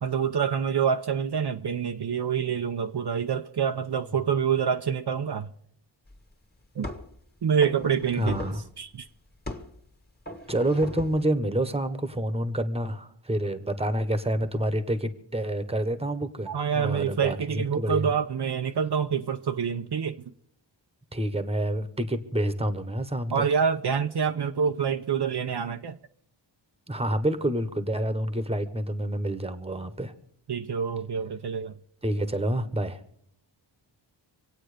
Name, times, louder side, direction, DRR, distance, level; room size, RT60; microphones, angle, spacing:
voice 1, 0.0-5.5 6.8-6.9 7.4-8.4 8.8-9.1 16.5-20.2 23.3-26.0 30.5-31.7, right 7 dB, 60° right, 0.8 m, -26 dB
sound 1, 6.1-6.2 6.8-7.2 7.6-8.7 9.5-9.8 10.3-11.3, left 1 dB, 20° left, 1.7 m, -38 dB
voice 2, 8.2-8.6 10.5-18.1 21.1-23.3 26.9-30.1 32.0-33.0, right 1 dB, 15° right, 1.2 m, -28 dB
26.0 x 9.0 x 5.1 m
wide cardioid pair, 125°, 46 cm